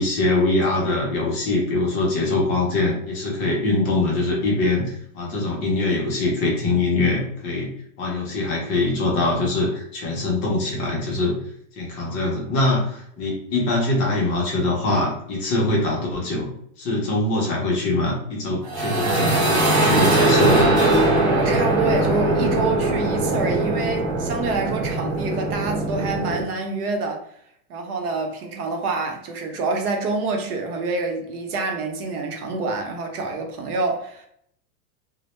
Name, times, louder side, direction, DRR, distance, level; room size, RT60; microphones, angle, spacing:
voice 1, 0.0-7.7 8.0-11.4 11.8-16.5 16.8-20.6, left 2 dB, 25° left, 0.6 m, -23 dB
sound 1, 18.6-26.4, right 2 dB, 30° right, 0.6 m, -20 dB
voice 2, 21.3-27.3 27.7-34.3, right 3 dB, 80° right, 0.8 m, -27 dB
2.1 x 2.1 x 2.9 m
supercardioid pair, 155°, 44 cm